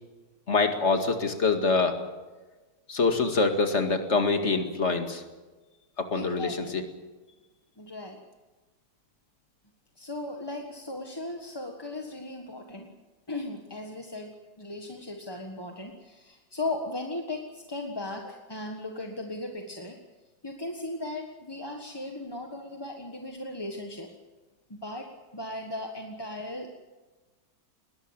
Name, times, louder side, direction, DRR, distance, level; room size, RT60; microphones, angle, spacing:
voice 1, 0.5-2.0 2.9-5.2 6.0-6.8, left 4 dB, 35° left, 6 dB, 2.3 m, -25 dB
voice 2, 6.1-6.7 7.8-8.2 10.0-12.9 13.3-20.0 20.4-24.1 24.7-26.9, left 2 dB, 15° left, 2 dB, 1.3 m, -37 dB
21.0 x 18.0 x 8.9 m, 1.2 s
omnidirectional pair, 2.1 m